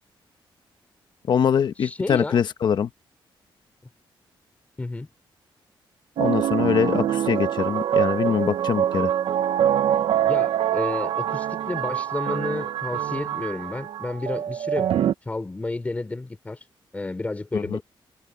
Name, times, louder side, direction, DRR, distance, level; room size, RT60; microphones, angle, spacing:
voice 1, 1.3-2.9 6.2-9.1 17.5-17.8, left 8 dB, 55° left, 1.0 m, -23 dB
voice 2, 1.8-2.4 4.8-5.1 10.3-14.9 15.2-16.6 16.9-17.8, left 2 dB, 15° left, 4.4 m, -31 dB
sound 1, 6.2-15.1, right 10 dB, 75° right, 0.8 m, -24 dB
wide cardioid pair, 165°, 9 cm